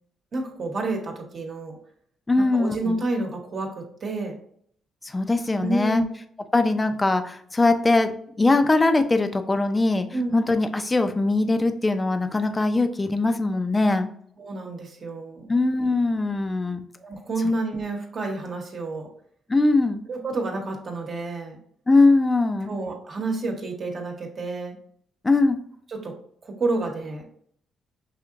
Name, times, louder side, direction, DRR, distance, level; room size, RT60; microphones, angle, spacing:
voice 1, 0.3-1.8 2.4-4.4 5.6-6.0 10.1-10.3 14.4-15.5 17.0-19.1 20.1-21.6 22.7-24.8 25.9-26.1 26.4-27.2, right 2 dB, 45° right, 1 dB, 1.1 m, -29 dB
voice 2, 2.3-3.0 5.0-6.0 6.5-8.1 8.4-10.1 10.3-14.1 15.5-16.8 19.5-20.0 21.9-22.7 25.2-25.6, left 2 dB, 20° left, 8 dB, 0.5 m, -21 dB
5.7 x 2.8 x 2.5 m, 0.64 s
cardioid pair, 90°, 0 cm